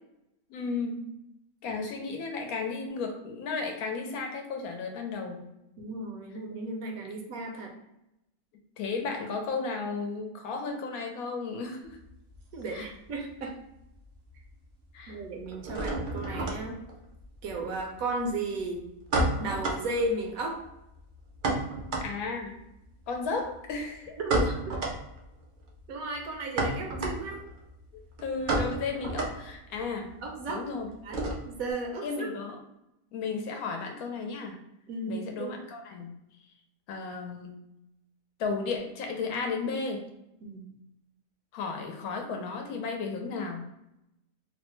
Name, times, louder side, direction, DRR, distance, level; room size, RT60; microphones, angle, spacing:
voice 1, 0.5-1.1 1.6-5.4 8.8-12.0 12.7-12.9 14.9-15.2 22.0-22.5 23.1-24.2 27.9-30.1 30.5-30.9 32.0-32.6 33.1-34.6 35.1-36.1 36.9-37.5 38.4-40.0 41.5-43.6, left 4 dB, 75° left, 3 dB, 1.0 m, -34 dB
voice 2, 5.8-7.7 12.5-13.5 15.1-16.8 17.4-18.8 19.4-20.6 24.2-24.5 25.9-27.4 30.2-30.7 31.0-32.3 34.9-35.6 40.4-40.7, right 2 dB, 70° right, 1 dB, 1.0 m, -34 dB
sound 1, 11.8-13.5 13.7-14.4 14.7-31.7, right 2 dB, 90° right, 0.4 m, -33 dB
3.1 x 2.1 x 3.0 m, 0.86 s
omnidirectional pair, 1.6 m